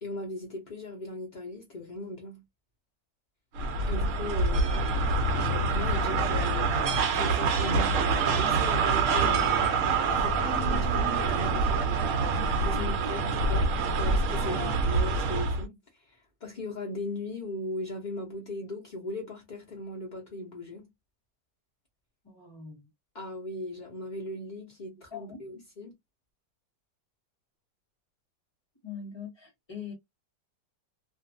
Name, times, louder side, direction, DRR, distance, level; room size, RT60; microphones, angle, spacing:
voice 1, 0.0-2.4 3.9-5.0 5.7-6.8 7.2-9.6 10.1-11.9 12.6-13.2 13.5-13.7 14.0-20.9 23.1-25.9, left 2 dB, 50° left, 0.5 m, -38 dB
sound 1, 3.6-15.6, right 4 dB, 70° right, 0.7 m, -26 dB
voice 2, 12.7-13.1 14.5-14.6 22.2-22.9 25.1-25.4 28.8-29.9, left 5 dB, 20° left, 0.9 m, -42 dB
2.6 x 2.4 x 2.6 m
omnidirectional pair, 1.9 m